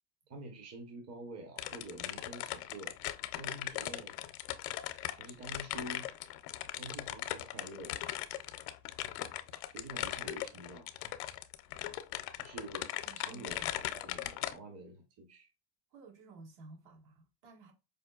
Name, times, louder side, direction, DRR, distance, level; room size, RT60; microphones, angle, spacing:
voice 1, 0.3-2.9 3.4-4.1 5.1-6.1 6.8-8.0 9.7-10.9 12.4-12.9 13.2-13.6 13.9-15.5, right 1 dB, 35° right, 0.9 m, -47 dB
sound 1, 1.6-14.6, left 14 dB, 85° left, 0.6 m, -39 dB
voice 2, 13.0-13.7 15.9-17.7, right 4 dB, 65° right, 1.5 m, -54 dB
5.0 x 2.2 x 2.3 m
supercardioid pair, 105°, 46 cm